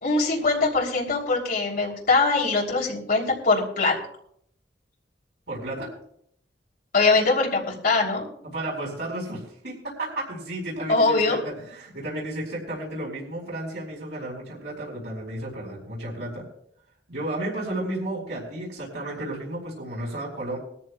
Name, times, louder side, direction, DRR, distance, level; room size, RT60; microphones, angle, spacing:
voice 1, 0.0-3.9 6.9-8.2 10.9-11.4, left 3 dB, 55° left, -2 dB, 3.1 m, -22 dB
voice 2, 5.5-5.9 8.4-16.4 17.1-20.6, right 1 dB, 80° right, -5 dB, 4.8 m, -33 dB
21.5 x 14.0 x 2.3 m, 0.68 s
head